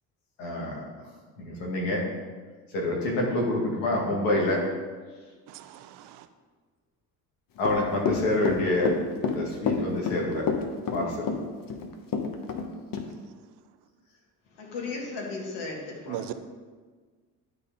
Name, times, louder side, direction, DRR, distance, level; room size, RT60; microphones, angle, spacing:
voice 1, 0.4-0.8 1.4-2.0 2.7-4.6 7.6-8.9 9.3-10.5 10.9-11.3, left 2 dB, 80° left, 2.0 m, -27 dB
voice 2, 5.5-6.2 16.1-16.3, right 13 dB, 65° right, 0.7 m, -38 dB
Run / Walk footsteps, 7.6-12.7 12.9-13.1, left 5 dB, 45° left, 1.1 m, -28 dB
voice 3, 14.6-16.3, left 3 dB, 65° left, 2.3 m, -36 dB
11.5 x 3.9 x 3.9 m
hypercardioid pair, 60°, 45 cm